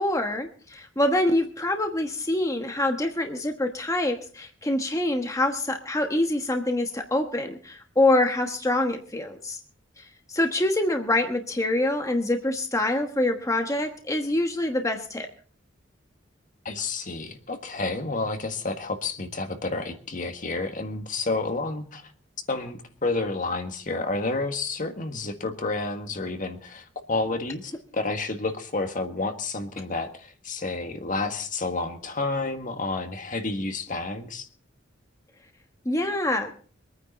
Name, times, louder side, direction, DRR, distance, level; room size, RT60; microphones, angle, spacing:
voice 1, 0.0-9.6 10.0-15.3 35.8-36.5, left 1 dB, 15° left, 4 dB, 1.2 m, -25 dB
voice 2, 16.6-22.1 22.5-34.5, left 3 dB, 45° left, 6 dB, 1.7 m, -30 dB
24.0 x 9.6 x 4.2 m, 0.43 s
head